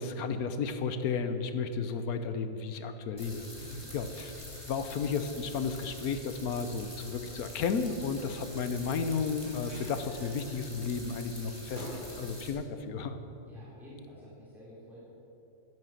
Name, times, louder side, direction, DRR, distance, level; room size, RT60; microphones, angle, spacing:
voice 1, 0.0-3.5 3.9-4.3 4.7-13.2, left 5 dB, 60° left, 9 dB, 1.1 m, -33 dB
sound 1, 3.2-12.5, left 1 dB, 15° left, 2.5 m, -46 dB
voice 2, 3.6-4.0 13.4-15.0, left 1 dB, ahead, -8 dB, 3.2 m, -50 dB
Thump thud, 6.9-11.0 11.3-12.2, equal, 75° right, 4.1 m, -49 dB
11.0 x 11.0 x 7.5 m, 2.9 s
omnidirectional pair, 2.1 m